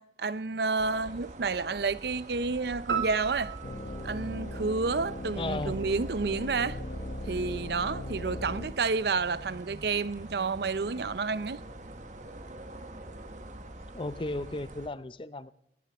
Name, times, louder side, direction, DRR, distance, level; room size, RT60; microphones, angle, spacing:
voice 1, 0.0-3.5 4.0-6.8 7.3-11.6, right 4 dB, 60° right, 0.6 m, -30 dB
sound 1, 0.8-14.9, right 1 dB, 45° right, 1.4 m, -45 dB
sound 2, 2.9-5.3, right 6 dB, 85° right, 3.5 m, -36 dB
sound 3, 3.6-8.7, left 1 dB, 50° left, 1.3 m, -38 dB
voice 2, 5.4-5.8 13.9-15.5, left 2 dB, 30° left, 0.5 m, -35 dB
19.5 x 16.5 x 4.3 m
head